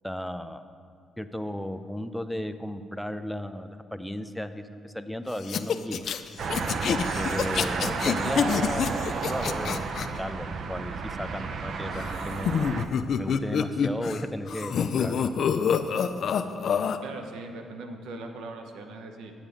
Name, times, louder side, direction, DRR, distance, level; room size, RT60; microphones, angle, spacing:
voice 1, 0.0-0.6 1.2-6.1 7.2-9.8 10.2-12.7 13.2-15.3, left 1 dB, ahead, 9 dB, 0.5 m, -35 dB
sound 1, 5.4-10.1 11.9-14.2 14.5-17.0, left 7 dB, 60° left, 0.4 m, -27 dB
sound 2, 6.4-12.9, right 5 dB, 60° right, 0.5 m, -32 dB
voice 2, 17.0-19.3, right 2 dB, 85° right, 5 dB, 0.8 m, -40 dB
9.0 x 7.3 x 5.0 m, 2.3 s
cardioid pair, 90°, 0 cm